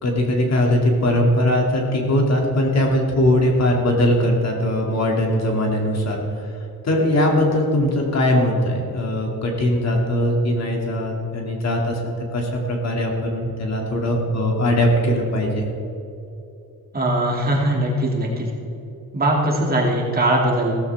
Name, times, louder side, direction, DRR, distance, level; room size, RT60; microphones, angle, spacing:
voice 1, 0.0-6.2 6.8-15.7, left 1 dB, 45° left, 0 dB, 2.5 m, -20 dB
voice 2, 16.9-18.5 19.1-20.7, right 1 dB, 25° right, -2 dB, 2.5 m, -20 dB
16.0 x 14.5 x 3.5 m, 2.8 s
cardioid pair, 140°, 36 cm